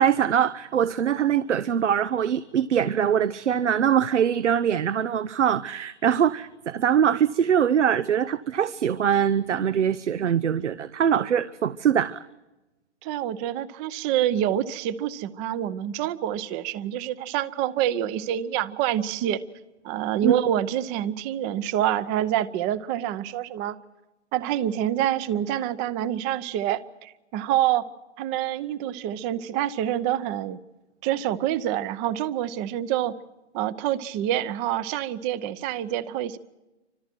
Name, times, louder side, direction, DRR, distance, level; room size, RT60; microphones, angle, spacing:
voice 1, 0.0-12.2 20.2-20.3, right 8 dB, 80° right, 15 dB, 0.9 m, -23 dB
voice 2, 13.0-19.4 19.8-23.8 24.3-27.8 28.2-30.6 31.0-33.2 33.5-36.4, right 11 dB, 20° right, 16 dB, 0.8 m, -27 dB
29.0 x 25.5 x 4.5 m, 1.1 s
hypercardioid pair, 145°, 35 cm